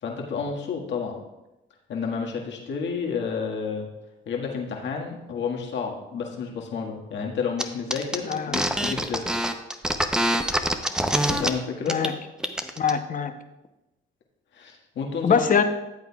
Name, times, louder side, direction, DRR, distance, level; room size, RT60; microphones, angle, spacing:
voice 1, 0.0-1.2 1.9-3.9 4.2-9.4 11.3-12.0 14.5-15.4, left 5 dB, 70° left, 0 dB, 1.7 m, -30 dB
sound 1, 7.6-7.7 7.9-11.5 11.9-12.1 12.4-12.9, equal, 5° right, 0.7 m, -24 dB
voice 2, 8.3-8.6 11.9-12.1 12.8-13.3 15.2-15.6, left 6 dB, 40° left, 8 dB, 0.9 m, -23 dB
14.0 x 8.1 x 2.4 m, 0.97 s
cardioid pair, 90°, 20 cm